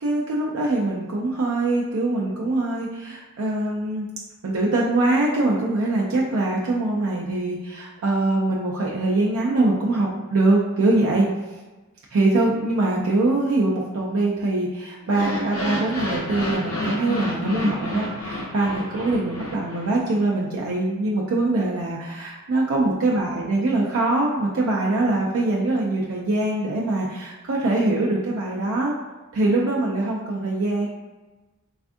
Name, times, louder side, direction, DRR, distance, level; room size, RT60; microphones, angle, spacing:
voice 1, 0.0-4.1 4.4-11.3 12.1-28.9 29.3-30.9, right 2 dB, 70° right, -3 dB, 0.4 m, -23 dB
sound 1, 15.0-20.2, left 1 dB, 65° left, 0.7 m, -30 dB
3.3 x 2.3 x 2.5 m, 1.2 s
head